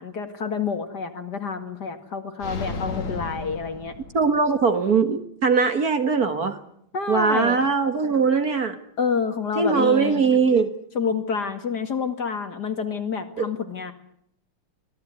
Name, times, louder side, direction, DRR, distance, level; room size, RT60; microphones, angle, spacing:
voice 1, 0.0-3.9 6.9-7.7 9.0-10.2 10.9-13.9, left 5 dB, 50° left, 2.6 m, -28 dB
sound 1, 2.4-4.6, left 4 dB, 70° left, 3.0 m, -33 dB
voice 2, 4.1-6.6 7.1-8.8 9.6-10.7 13.4-13.5, right 5 dB, 45° right, 1.9 m, -21 dB
24.5 x 17.0 x 9.5 m
omnidirectional pair, 2.4 m